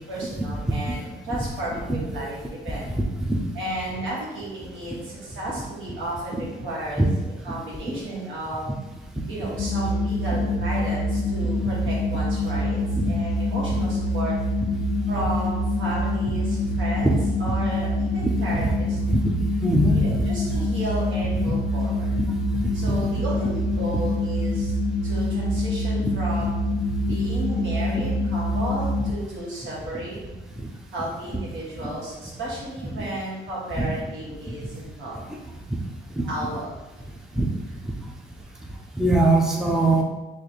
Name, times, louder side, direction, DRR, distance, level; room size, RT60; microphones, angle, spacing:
voice 1, 0.1-2.9 3.5-7.1 7.4-8.7 9.3-12.8 13.1-14.3 15.1-19.0 19.9-22.1 22.7-24.8 25.0-26.5 27.1-30.2 30.9-35.2 36.3-37.0 37.7-37.8, right 1 dB, 75° right, -6 dB, 1.5 m, -33 dB
sound 1, 9.6-29.1, left 1 dB, 65° left, 0.4 m, -25 dB
voice 2, 19.6-20.2 20.5-20.6 21.5-21.6 33.8-33.9 36.2-36.3 37.4-37.5 39.0-40.0, right 1 dB, ahead, 0 dB, 0.5 m, -21 dB
3.1 x 2.5 x 4.0 m, 1.1 s
cardioid pair, 90°, 20 cm